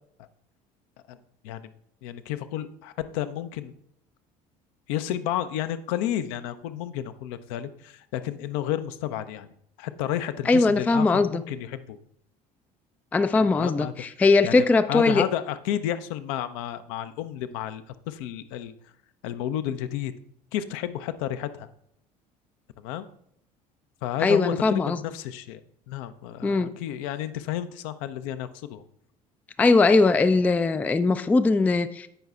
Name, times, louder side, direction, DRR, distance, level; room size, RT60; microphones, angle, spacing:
voice 1, 2.0-3.7 4.9-9.5 9.8-12.0 13.4-13.9 14.4-18.7 19.2-20.1 20.5-21.7 22.8-23.1 24.0-25.6 25.9-28.8, left 11 dB, 55° left, 12 dB, 0.5 m, -31 dB
voice 2, 10.5-11.4 13.1-15.2 24.2-25.0 26.4-26.7 29.6-32.1, left 3 dB, 5° left, 12 dB, 0.3 m, -20 dB
15.5 x 5.5 x 2.4 m, 0.72 s
figure-of-eight pair, 60°, 21 cm